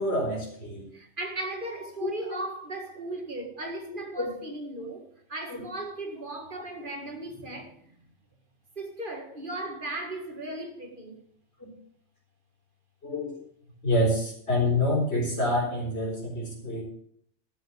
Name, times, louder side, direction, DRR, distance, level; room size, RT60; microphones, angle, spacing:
voice 1, 0.0-0.9 2.0-2.4 3.8-4.3 5.5-5.6 11.6-11.7 13.0-13.3 13.8-16.8, left 1 dB, 60° left, 4.5 m, -27 dB
voice 2, 0.9-8.0 8.8-11.2, right 2 dB, 45° right, 2.1 m, -37 dB
12.5 x 6.9 x 7.1 m
omnidirectional pair, 1.2 m